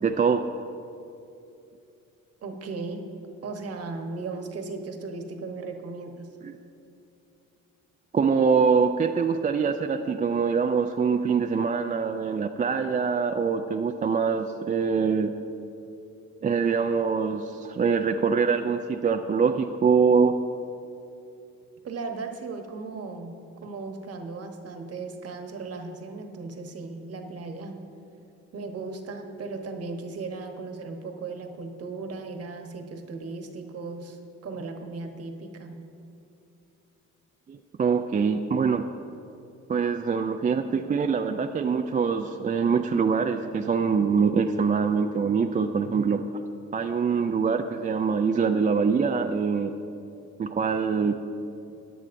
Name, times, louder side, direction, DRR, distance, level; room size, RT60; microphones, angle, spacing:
voice 1, 0.0-0.4 6.4-6.5 8.1-15.3 16.4-20.4 37.5-38.9 39.7-46.2 46.7-49.7 50.4-51.3, right 5 dB, 25° right, 6 dB, 0.4 m, -24 dB
voice 2, 2.4-3.0 3.4-6.3 21.8-23.4 23.6-27.8 28.5-35.9, right 3 dB, 55° right, 5 dB, 1.2 m, -36 dB
16.5 x 9.8 x 2.6 m, 2.7 s
cardioid pair, 90°, 30 cm